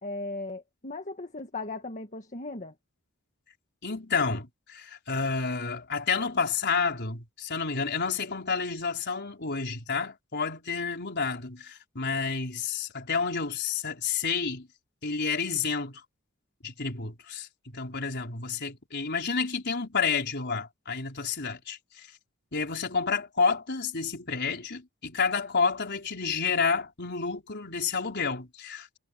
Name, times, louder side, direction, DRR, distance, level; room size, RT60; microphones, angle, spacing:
voice 1, 0.0-2.7, left 2 dB, 35° left, 1.7 m, -37 dB
voice 2, 3.8-14.7 15.0-16.0 16.6-22.1 22.5-29.0, left 5 dB, 55° left, 4.6 m, -30 dB
head